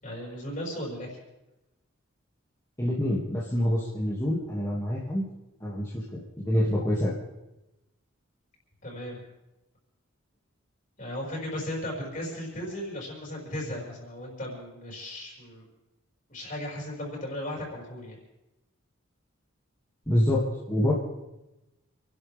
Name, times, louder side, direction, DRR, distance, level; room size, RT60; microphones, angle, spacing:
voice 1, 0.0-1.2 8.8-9.2 11.0-15.7 16.3-18.2, left 1 dB, 40° left, -3 dB, 6.0 m, -36 dB
voice 2, 2.8-5.3 5.6-7.1 20.1-20.9, left 1 dB, 15° left, -8 dB, 2.5 m, -26 dB
29.0 x 12.0 x 3.7 m, 0.97 s
head